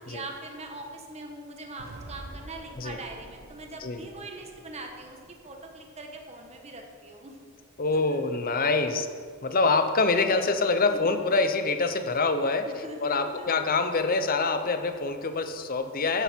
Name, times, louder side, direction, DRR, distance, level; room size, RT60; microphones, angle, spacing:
voice 1, 0.1-7.4 7.9-8.2 10.9-11.1 12.6-13.5, right 2 dB, 30° right, 2 dB, 1.5 m, -42 dB
sound 1, 1.8-5.9, right 2 dB, 80° right, 1.2 m, -48 dB
voice 2, 7.8-9.1 9.4-16.2, left 3 dB, 45° left, 8 dB, 0.9 m, -25 dB
14.0 x 10.0 x 4.6 m, 2.1 s
head